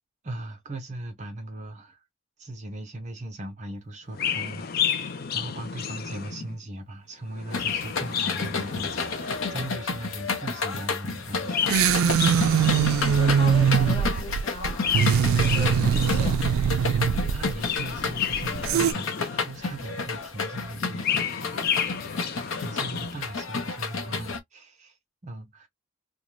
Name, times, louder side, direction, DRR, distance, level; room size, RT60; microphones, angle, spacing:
voice 1, 0.2-2.1 2.4-11.6 17.1-21.6 22.6-25.7, right 1 dB, 35° right, 0.7 m, -39 dB
Chirp tweet, 4.1-6.6 7.3-9.7 11.3-13.5 14.7-16.6 17.4-19.7 20.7-23.3, left 7 dB, 45° left, 0.4 m, -31 dB
sound 1, 7.5-24.4, left 4 dB, 80° left, 0.7 m, -31 dB
sound 2, 11.7-18.9, right 7 dB, 85° right, 0.3 m, -22 dB
voice 2, 13.0-15.0 15.3-16.5, left 2 dB, 25° left, 0.8 m, -37 dB
2.6 x 2.1 x 3.0 m
head